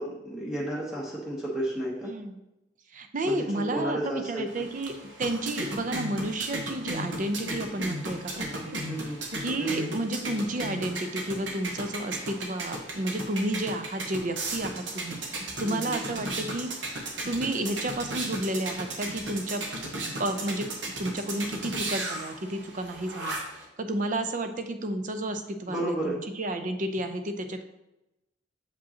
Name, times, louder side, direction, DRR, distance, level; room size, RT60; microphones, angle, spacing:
voice 1, 0.0-2.1 3.2-4.6 8.9-9.2 9.6-9.9 15.6-15.9 25.7-26.2, right 1 dB, 5° right, -6 dB, 0.9 m, -32 dB
voice 2, 2.0-2.4 2.9-8.8 9.4-16.7 17.2-19.6 20.2-20.7 21.0-23.4 23.8-27.6, right 1 dB, 45° right, 8 dB, 0.6 m, -31 dB
sound 1, 4.5-23.6, right 1 dB, 85° right, 1.2 m, -35 dB
7.0 x 5.1 x 2.8 m, 0.92 s
head